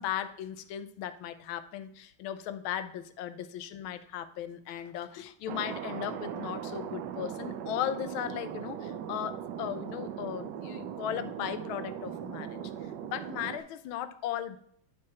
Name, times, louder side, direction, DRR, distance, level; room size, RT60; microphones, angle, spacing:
voice 1, 0.0-12.6 13.1-14.6, left 10 dB, 85° left, 11 dB, 1.4 m, -37 dB
Thunder, 5.5-13.6, right 9 dB, 70° right, 1.2 m, -39 dB
9.5 x 4.7 x 4.3 m, 0.65 s
omnidirectional pair, 2.2 m